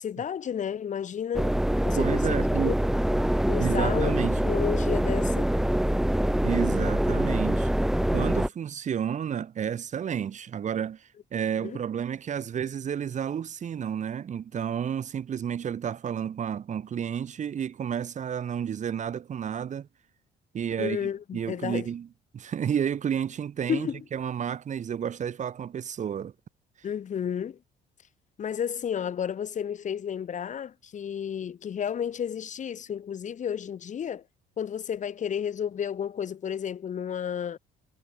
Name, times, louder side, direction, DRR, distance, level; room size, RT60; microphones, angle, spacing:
voice 1, 0.0-1.6 1.8-2.7 3.5-4.1 4.4-5.5 11.6-11.8 20.8-21.9 23.7-24.0 26.8-27.6 28.4-34.2 34.6-37.6, left 8 dB, 45° left, 6.3 m, -32 dB
sound 1, 1.3-8.5, right 1 dB, ahead, 0.6 m, -25 dB
voice 2, 2.0-2.8 3.6-4.4 6.4-7.7 8.1-19.9 20.5-22.1 22.3-26.3, right 8 dB, 45° right, 3.5 m, -31 dB
cardioid pair, 110°, 17 cm